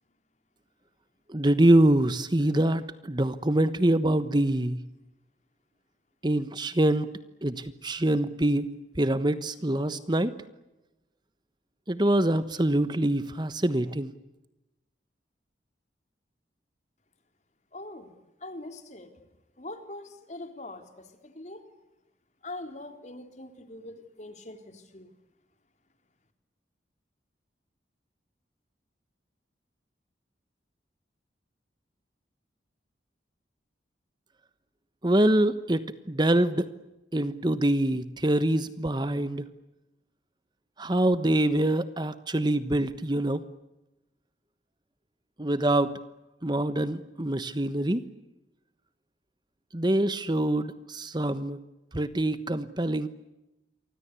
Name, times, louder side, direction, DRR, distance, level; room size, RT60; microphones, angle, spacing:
voice 1, 1.3-4.8 6.2-7.1 7.4-8.7 9.0-10.3 11.9-14.1 35.0-36.7 37.1-39.5 40.8-43.4 45.4-45.9 46.4-48.0 49.7-51.6 51.9-53.1, right 1 dB, 25° right, 13 dB, 1.2 m, -25 dB
voice 2, 17.7-18.1 18.4-19.2 19.6-21.6 22.4-25.1, left 2 dB, 40° left, 7 dB, 3.8 m, -42 dB
29.0 x 24.5 x 8.3 m, 0.96 s
head